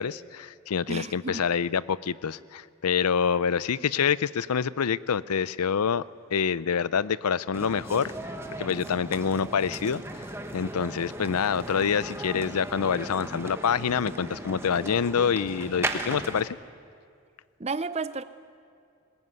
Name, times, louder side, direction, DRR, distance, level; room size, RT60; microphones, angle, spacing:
voice 1, 0.0-6.0 6.3-8.1 8.6-10.2 10.5-16.6, left 6 dB, 85° left, 19 dB, 0.5 m, -26 dB
voice 2, 0.9-1.4 17.6-18.2, right 4 dB, 30° right, 14 dB, 0.6 m, -32 dB
sound 1, 7.5-16.5, right 1 dB, 10° right, 1.1 m, -37 dB
21.0 x 20.5 x 9.5 m, 2.2 s
head